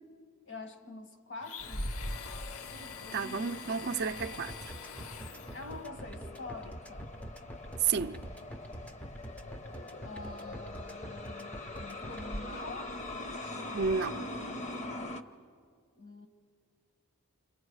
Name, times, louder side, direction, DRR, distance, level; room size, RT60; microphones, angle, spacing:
voice 1, 0.4-2.0 5.5-7.1 10.0-13.0 16.0-16.3, left 3 dB, 55° left, 1.6 m, -45 dB
Domestic sounds home sounds, 1.4-5.8, left 7 dB, 75° left, 0.6 m, -46 dB
sound 1, 1.6-15.2, left 1 dB, 30° left, 0.9 m, -42 dB
voice 2, 3.1-4.5 7.8-8.2 13.7-14.2, right 6 dB, 50° right, 0.5 m, -31 dB
sound 2, 4.2-12.2, right 1 dB, 5° left, 0.5 m, -45 dB
29.5 x 26.5 x 4.8 m
head